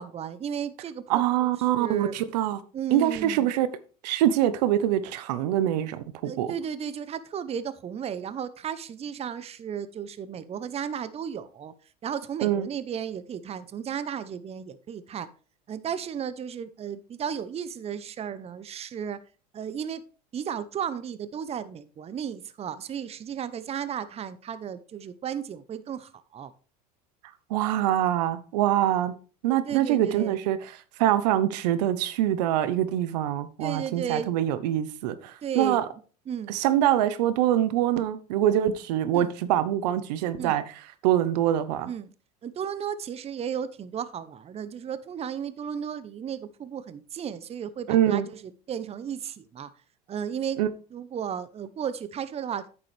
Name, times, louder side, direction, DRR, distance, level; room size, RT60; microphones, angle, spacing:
voice 1, 0.0-2.2 2.7-3.5 6.2-11.7 12.0-15.3 15.7-19.2 19.5-20.0 20.3-26.5 29.7-30.4 33.6-34.4 35.4-35.8 36.3-36.6 39.1-39.3 40.4-40.6 41.8-42.1 42.4-49.7 50.1-50.6 50.9-52.7, right 8 dB, 30° right, 0.7 m, -34 dB
voice 2, 1.1-2.6 2.9-3.7 4.0-6.5 12.4-12.7 27.5-29.1 29.4-30.7 31.0-35.8 36.5-40.6 41.0-41.9 47.9-48.3 50.6-50.7, right 12 dB, 75° right, 0.8 m, -24 dB
9.2 x 7.0 x 3.3 m
hypercardioid pair, 90°, 21 cm